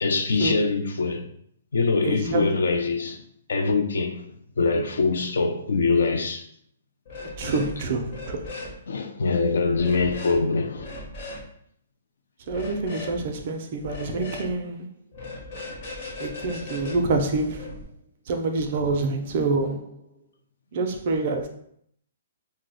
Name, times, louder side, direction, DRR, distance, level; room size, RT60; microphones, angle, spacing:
voice 1, 0.0-1.3 1.7-3.2 3.5-4.2 4.6-6.5 7.4-7.5 8.9-10.9, left 4 dB, 85° left, 0.4 m, -23 dB
voice 2, 2.0-2.8 7.4-8.5 12.5-14.9 16.2-17.8 18.3-19.9 20.7-21.5, right 3 dB, 35° right, 0.4 m, -27 dB
sound 1, 7.1-7.7 8.0-8.7 9.7-10.4 10.8-11.4 12.5-13.2 13.8-14.5 15.1-17.8, left 2 dB, 35° left, 0.6 m, -38 dB
2.6 x 2.0 x 4.0 m
hypercardioid pair, 180°, 0 cm